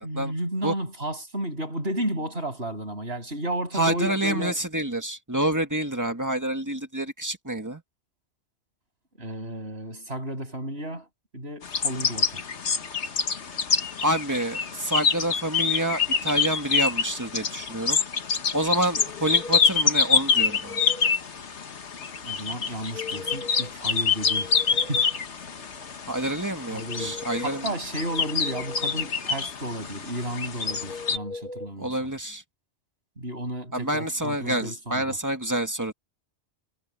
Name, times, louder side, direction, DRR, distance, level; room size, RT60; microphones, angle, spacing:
voice 1, 0.0-4.6 9.1-11.1 11.3-12.4 22.2-25.1 25.4-25.5 26.7-32.0 33.2-35.2, right 1 dB, 65° right, 7.7 m, -33 dB
voice 2, 3.7-7.8 14.0-18.0 18.5-20.8 26.1-27.7 31.8-32.4 33.7-35.9, right 1 dB, 15° right, 2.0 m, -28 dB
sound 1, 11.6-31.2, left 5 dB, 85° left, 1.6 m, -26 dB
sound 2, 18.9-19.8 20.3-21.1 22.7-23.7 24.1-25.2 26.6-27.6 28.1-29.1 30.7-31.7, left 4 dB, 55° left, 1.7 m, -40 dB
omnidirectional pair, 1.1 m